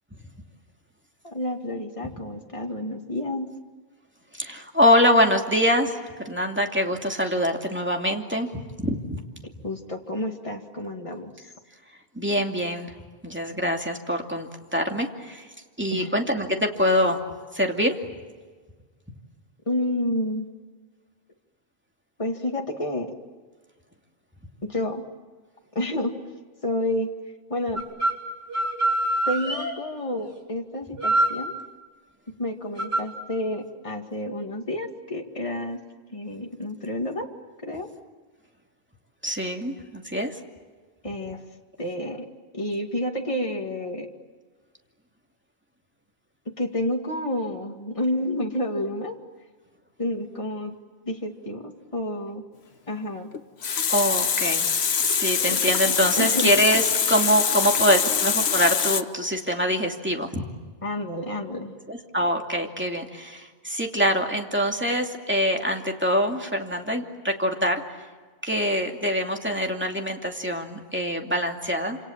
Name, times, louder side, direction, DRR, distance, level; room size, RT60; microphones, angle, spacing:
voice 1, 1.2-3.5 9.4-11.3 15.9-16.1 19.7-20.5 22.2-23.1 24.7-25.0 25.7-26.2 26.6-27.1 27.5-27.8 29.3-31.5 32.4-35.8 36.1-37.3 37.6-37.9 41.0-41.4 41.8-42.3 42.5-44.1 46.6-49.2 50.0-50.8 51.1-52.4 52.9-53.3 55.5-55.6 56.2-56.5 60.8-61.7, left 1 dB, 30° left, 2 dB, 2.3 m, -29 dB
voice 2, 4.3-9.2 12.1-12.9 13.2-15.5 15.8-17.2 17.5-17.9 39.2-40.3 53.9-54.7 55.1-60.5 61.9-67.8 68.4-72.0, equal, 10° right, 2 dB, 2.6 m, -24 dB
sound 1, 27.8-28.2 28.5-29.7 31.0-31.4 32.8-33.0, right 1 dB, 75° right, 4.2 m, -24 dB
Water tap faucet, 53.3-59.0, left 7 dB, 85° left, 1.2 m, -24 dB
27.5 x 27.5 x 7.3 m, 1.4 s
omnidirectional pair, 1.1 m